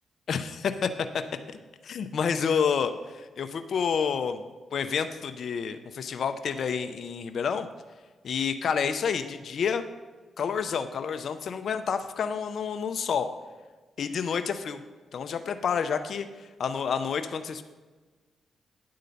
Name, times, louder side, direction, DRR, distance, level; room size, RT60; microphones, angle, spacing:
voice 1, 0.3-0.9 1.8-4.4 4.7-7.7 8.2-9.8 10.4-13.3 14.0-14.8 15.1-17.6, left 6 dB, 65° left, 8 dB, 0.6 m, -29 dB
9.4 x 3.8 x 6.8 m, 1.4 s
supercardioid pair, 60°, 0 cm